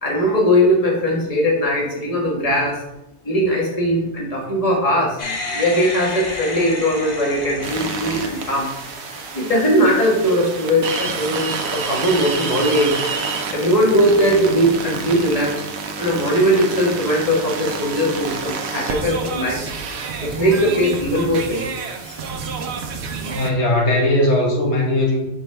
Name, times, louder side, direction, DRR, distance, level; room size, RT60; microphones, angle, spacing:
voice 1, 0.0-2.8 3.2-5.2 5.5-8.7 9.3-12.9 13.5-15.5 16.0-19.6 20.2-21.7 22.0-22.2, equal, 35° left, -2 dB, 1.6 m, -19 dB
sound 1, 5.2-10.7, left 2 dB, 50° left, 1.1 m, -32 dB
sound 2, 7.6-23.5, right 4 dB, 75° right, 1.0 m, -28 dB
voice 2, 23.3-25.2, left 1 dB, 80° left, -1 dB, 1.7 m, -18 dB
6.0 x 5.4 x 3.4 m, 0.88 s
omnidirectional pair, 1.1 m